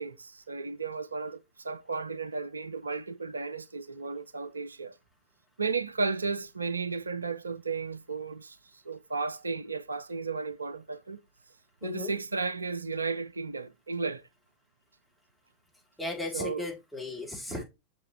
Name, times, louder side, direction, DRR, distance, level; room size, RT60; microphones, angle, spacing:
voice 1, 0.0-5.0 5.6-11.2 11.8-14.2 16.3-16.7 17.5-17.6, right 4 dB, 75° right, 0.4 m, -34 dB
voice 2, 11.8-12.1 16.0-17.6, left 2 dB, ahead, 3.5 m, -36 dB
7.0 x 6.7 x 3.2 m
figure-of-eight pair, 90°, 0 cm